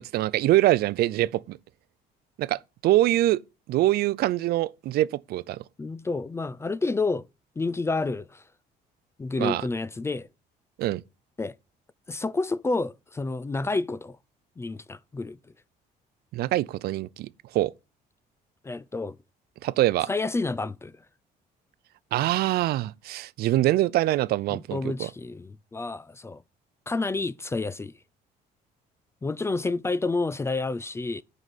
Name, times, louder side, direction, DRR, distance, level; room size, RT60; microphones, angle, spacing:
voice 1, 0.0-1.6 2.4-3.4 3.7-5.6 9.4-9.6 10.8-11.0 16.3-17.3 17.5-17.7 19.6-20.1 22.1-25.1, right 15 dB, 70° right, 0.5 m, -24 dB
voice 2, 5.8-7.3 7.6-8.4 9.2-10.3 11.4-11.5 12.1-14.2 14.6-15.4 18.6-19.2 20.1-20.9 24.5-26.4 26.9-27.9 29.2-31.2, left 3 dB, 15° left, 0.3 m, -29 dB
9.0 x 5.0 x 4.1 m
cardioid pair, 110°, 17 cm